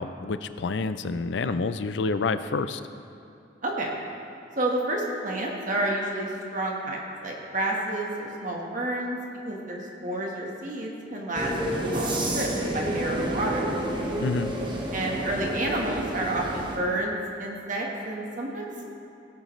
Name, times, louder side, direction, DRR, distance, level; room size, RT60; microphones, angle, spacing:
voice 1, 0.0-2.8 14.2-14.5, left 4 dB, 65° left, 12 dB, 0.4 m, -28 dB
voice 2, 4.6-9.2 9.4-13.7 14.9-18.9, right 1 dB, 45° right, -1 dB, 1.4 m, -30 dB
sound 1, 11.3-16.8, right 1 dB, 25° right, 1.3 m, -30 dB
17.5 x 9.2 x 3.2 m, 2.6 s
head